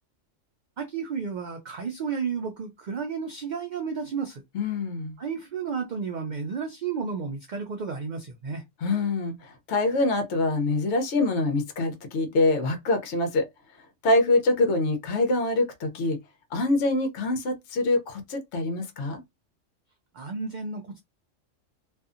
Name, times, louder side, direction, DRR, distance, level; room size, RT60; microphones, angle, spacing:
voice 1, 0.8-4.4 5.2-8.6 20.1-21.0, right 5 dB, 75° right, 0.4 m, -32 dB
voice 2, 4.5-5.2 8.8-13.5 14.0-16.2 16.5-19.2, left 2 dB, 65° left, 0.9 m, -25 dB
2.6 x 2.3 x 2.4 m
omnidirectional pair, 1.3 m